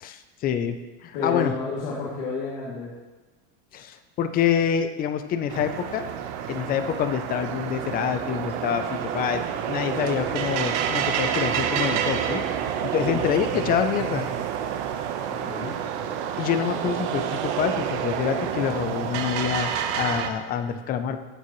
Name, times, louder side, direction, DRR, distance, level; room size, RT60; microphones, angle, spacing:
voice 1, 0.0-0.8 1.0-1.5 3.7-6.0 6.5-12.4 12.9-14.3 16.4-21.2, left 8 dB, 25° left, 9 dB, 0.5 m, -26 dB
voice 2, 1.1-2.9 13.0-13.2 15.2-15.8, left 4 dB, 70° left, -8 dB, 2.8 m, -31 dB
sound 1, 5.5-20.3, right 8 dB, 85° right, 1.1 m, -28 dB
14.5 x 7.4 x 3.1 m, 1.2 s
supercardioid pair, 160°, 34 cm